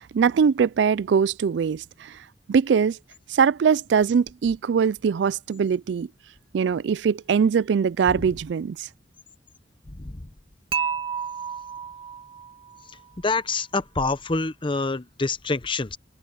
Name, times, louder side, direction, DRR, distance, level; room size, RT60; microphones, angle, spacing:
voice 1, 0.0-2.2 2.5-3.0 3.3-6.1 6.5-8.9, right 6 dB, 70° right, 0.3 m, -22 dB
Dishes pots and pans / Chink clink, 10.7-12.8, right 7 dB, 30° right, 1.5 m, -31 dB
voice 2, 13.2-16.0, left 3 dB, 30° left, 0.8 m, -26 dB
head